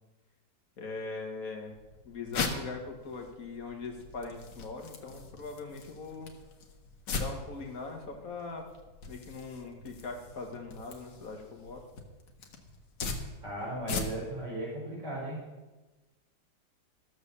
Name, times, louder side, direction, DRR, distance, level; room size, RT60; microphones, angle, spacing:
voice 1, 0.8-1.8 2.0-6.3 7.1-8.7 9.1-11.8, left 3 dB, 50° left, 2 dB, 1.9 m, -41 dB
sound 1, 1.7-14.4, left 4 dB, 75° left, 1.9 m, -41 dB
voice 2, 13.4-15.4, right 1 dB, 40° right, -6 dB, 4.8 m, -36 dB
14.0 x 7.0 x 6.8 m, 1.2 s
omnidirectional pair, 1.9 m